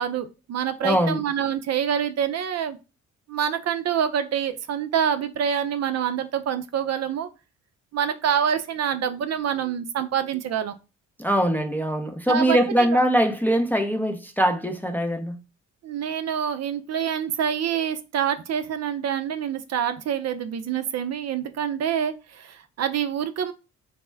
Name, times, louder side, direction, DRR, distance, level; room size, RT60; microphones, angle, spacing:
voice 1, 0.0-2.8 3.3-7.3 7.9-10.7 12.3-13.0 15.8-23.5, right 8 dB, 50° right, 0.5 m, -26 dB
voice 2, 0.8-1.2 11.2-15.4, equal, 5° left, 0.5 m, -22 dB
4.2 x 2.1 x 3.3 m
supercardioid pair, 65°, 33 cm